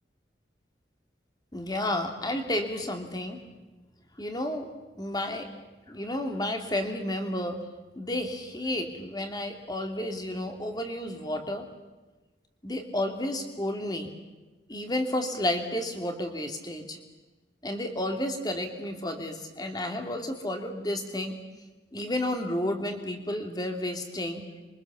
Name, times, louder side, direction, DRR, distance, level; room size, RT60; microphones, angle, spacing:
voice 1, 1.5-3.4 4.2-4.7 5.0-5.5 5.9-7.6 8.0-11.7 12.6-14.1 14.7-17.0 17.6-21.4 21.9-24.4, left 1 dB, 20° left, 5 dB, 2.7 m, -31 dB
26.5 x 24.0 x 7.1 m, 1.2 s
head